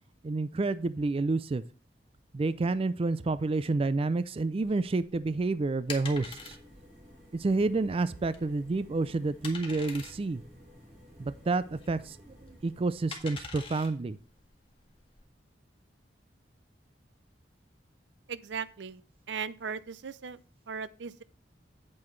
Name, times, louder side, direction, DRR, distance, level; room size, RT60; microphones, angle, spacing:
voice 1, 0.2-1.6 2.3-6.6 7.3-10.4 11.2-12.2 12.4-14.2, right 3 dB, 30° right, 0.4 m, -29 dB
sound 1, 4.6-15.2, left 4 dB, 30° left, 1.8 m, -46 dB
sound 2, 6.0-13.1, equal, 50° right, 4.2 m, -54 dB
voice 2, 18.3-19.0 19.3-20.4 20.7-21.2, right 6 dB, 80° right, 0.6 m, -37 dB
8.6 x 8.5 x 3.2 m
head